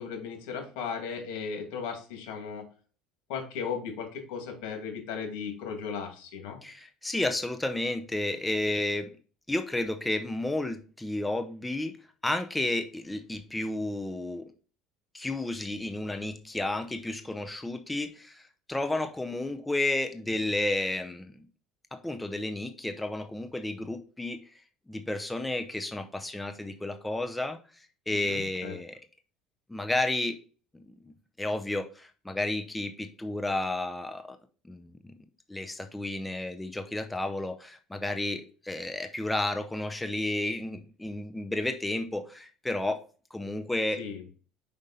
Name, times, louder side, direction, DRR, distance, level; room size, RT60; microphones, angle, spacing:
voice 1, 0.0-2.7 3.3-6.6 28.1-28.7 44.0-44.2, left 6 dB, 80° left, 2.4 m, -36 dB
voice 2, 6.6-9.1 9.5-14.4 15.1-21.4 21.9-24.4 24.9-27.6 28.1-29.0 29.7-30.4 31.1-34.4 34.6-35.1 35.5-43.0 43.3-44.0, left 2 dB, 10° left, 0.6 m, -32 dB
5.3 x 5.1 x 4.1 m
supercardioid pair, 115°, 0 cm